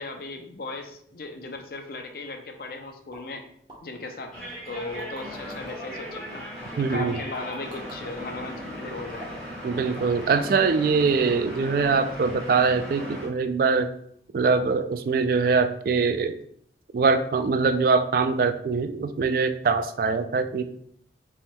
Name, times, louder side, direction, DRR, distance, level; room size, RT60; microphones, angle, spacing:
voice 1, 0.0-3.4 3.8-4.4 4.7-6.5 6.8-9.3, left 2 dB, 55° left, 4 dB, 0.6 m, -37 dB
sound 1, 3.1-3.2 3.7-3.8 4.7-5.7 7.0-8.0 9.1-9.5 9.9-10.2 10.5-10.8 11.1-11.2, right 1 dB, 25° right, 1.0 m, -45 dB
sound 2, 4.3-13.3, equal, 5° left, 1.5 m, -38 dB
voice 2, 6.8-7.2 9.6-13.9 14.3-16.4 16.9-20.6, right 4 dB, 50° right, 9 dB, 0.3 m, -23 dB
5.3 x 3.5 x 2.2 m, 0.65 s
head